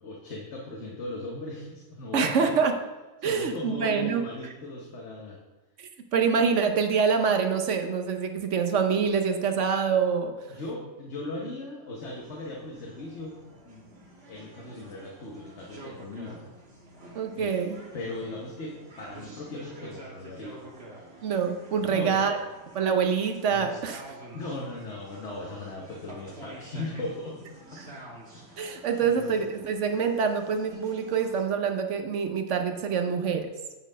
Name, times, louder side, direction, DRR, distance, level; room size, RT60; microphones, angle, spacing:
voice 1, 0.0-2.5 3.2-5.4 10.5-13.9 14.3-16.5 17.3-17.6 17.9-20.6 21.8-22.3 24.3-27.4 27.7-27.8 28.3-28.7 29.0-29.4, left 2 dB, 55° left, -2 dB, 1.3 m, -38 dB
voice 2, 2.1-2.7 3.2-4.2 5.8-10.3 17.1-17.8 21.2-22.4 22.7-24.2 28.6-33.5, right 6 dB, 65° right, 6 dB, 1.0 m, -26 dB
sound 1, 12.0-31.4, right 1 dB, 50° right, 1.7 m, -48 dB
9.1 x 4.3 x 5.0 m, 1.1 s
omnidirectional pair, 1.4 m